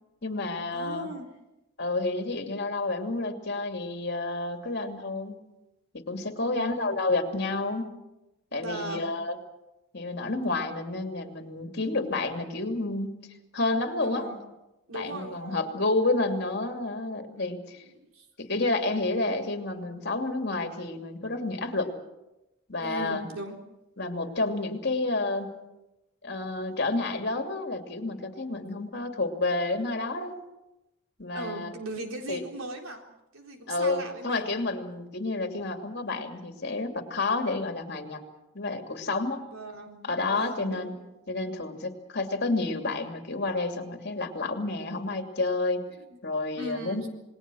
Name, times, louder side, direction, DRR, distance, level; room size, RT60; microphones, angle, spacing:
voice 1, 0.2-1.1 1.8-5.4 5.9-7.9 8.5-9.4 9.9-13.2 13.5-14.3 14.9-17.8 18.4-21.9 22.7-23.3 24.0-25.5 26.2-30.3 31.2-31.7 32.3-32.4 33.7-38.2 38.5-39.4 40.0-40.9 41.3-45.8 46.2-47.0, left 2 dB, 55° left, 5 dB, 2.7 m, -30 dB
voice 2, 0.7-1.3 6.4-6.9 8.5-9.1 14.0-14.4 14.9-15.8 17.3-17.5 18.0-18.3 22.8-23.6 31.3-33.0 33.3-34.5 39.5-40.0 40.3-41.0 46.1-46.2 46.6-47.1, right 1 dB, 90° right, 3 dB, 3.9 m, -38 dB
28.0 x 20.0 x 6.3 m, 0.96 s
head